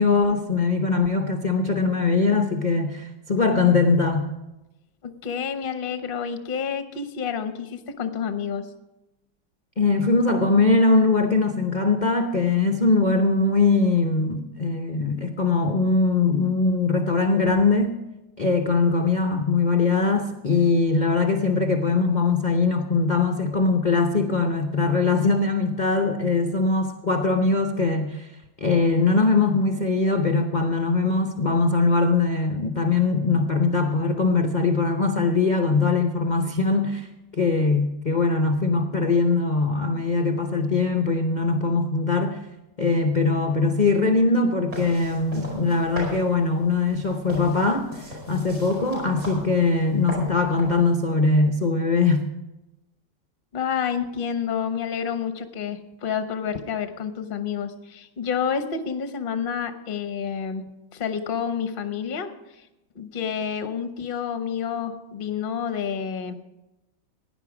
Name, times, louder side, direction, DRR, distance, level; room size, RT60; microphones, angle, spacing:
voice 1, 0.0-4.3 9.8-18.0 18.4-28.3 28.6-37.1 37.3-42.4 42.8-52.2, left 3 dB, 70° left, 5 dB, 0.4 m, -21 dB
voice 2, 5.0-8.7 53.5-60.6 60.9-62.3 62.9-66.3, left 7 dB, 40° left, 8 dB, 0.8 m, -29 dB
sound 1, 44.7-50.9, equal, 50° right, 5.7 m, -38 dB
16.5 x 10.5 x 5.0 m, 0.97 s
omnidirectional pair, 2.1 m